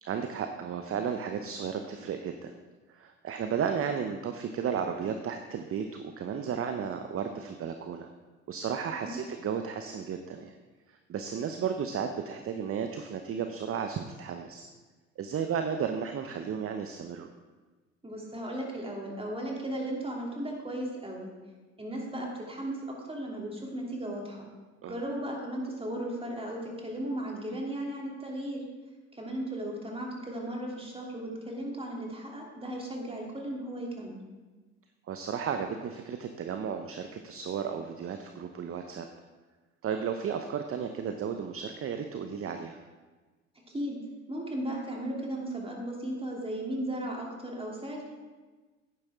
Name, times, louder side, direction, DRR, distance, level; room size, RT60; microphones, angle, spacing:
voice 1, 0.0-2.5 2.9-8.1 8.5-10.6 10.9-14.7 15.2-17.3 24.8-25.0 35.1-39.1 39.8-42.8, right 7 dB, 35° right, 6 dB, 0.8 m, -34 dB
voice 2, 18.0-21.3 21.8-22.8 23.1-24.5 24.9-28.6 29.1-34.2 43.7-44.0 44.3-48.0, right 1 dB, 15° right, -1 dB, 3.0 m, -36 dB
11.0 x 9.9 x 3.7 m, 1.3 s
hypercardioid pair, 60°, 37 cm